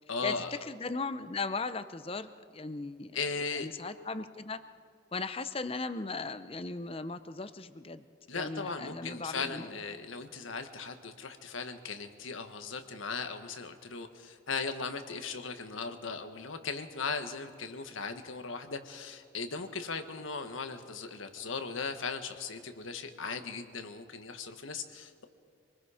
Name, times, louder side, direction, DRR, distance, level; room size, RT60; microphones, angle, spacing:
voice 1, 0.1-0.6 3.1-3.7 8.3-25.2, left 4 dB, 80° left, 7 dB, 1.4 m, -38 dB
voice 2, 0.7-3.2 3.6-4.6 5.1-8.0 8.3-9.7 10.0-10.1, left 3 dB, 30° left, 12 dB, 0.7 m, -37 dB
26.0 x 20.5 x 5.0 m, 2.3 s
head